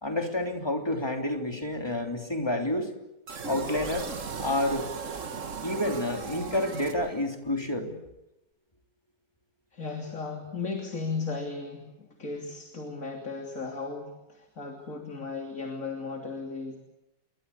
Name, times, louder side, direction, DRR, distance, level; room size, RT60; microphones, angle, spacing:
voice 1, 0.0-2.9 3.5-4.1 4.4-4.9 5.6-8.0, left 1 dB, 15° left, 3 dB, 3.3 m, -29 dB
sound 1, 3.3-7.5, right 5 dB, 45° right, 1.9 m, -37 dB
voice 2, 9.7-16.8, left 4 dB, 45° left, 2 dB, 3.5 m, -36 dB
28.5 x 23.0 x 8.5 m, 0.94 s
omnidirectional pair, 1.9 m